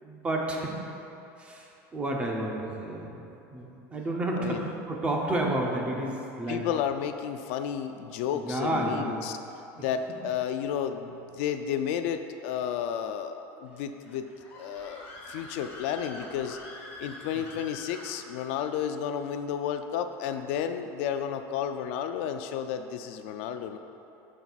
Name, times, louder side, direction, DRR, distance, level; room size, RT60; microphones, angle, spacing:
voice 1, 0.0-0.8 1.4-3.1 3.5-6.7 8.3-9.2 10.1-10.2, right 1 dB, 15° right, 0 dB, 0.7 m, -31 dB
voice 2, 6.5-9.4 9.8-14.3 14.6-16.6 17.0-23.8, left 8 dB, 70° left, 8 dB, 0.4 m, -32 dB
Screaming, 14.0-18.6, left 1 dB, 30° left, 1.5 m, -45 dB
12.0 x 5.5 x 2.4 m, 2.9 s
cardioid pair, 165°, 7 cm